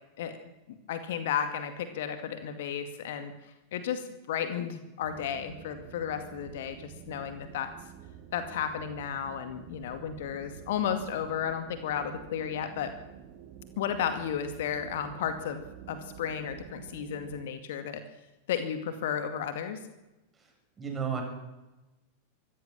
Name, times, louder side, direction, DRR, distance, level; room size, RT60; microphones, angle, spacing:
voice 1, 0.7-3.3 3.7-7.7 8.3-13.0 13.8-18.0 18.5-19.8, left 8 dB, 55° left, 9 dB, 2.2 m, -33 dB
sound 1, 5.0-17.5, right 9 dB, 45° right, 2.7 m, -49 dB
voice 2, 20.3-21.2, right 6 dB, 20° right, 2 dB, 7.7 m, -34 dB
25.5 x 15.5 x 7.3 m, 1.0 s
figure-of-eight pair, 90°, 0 cm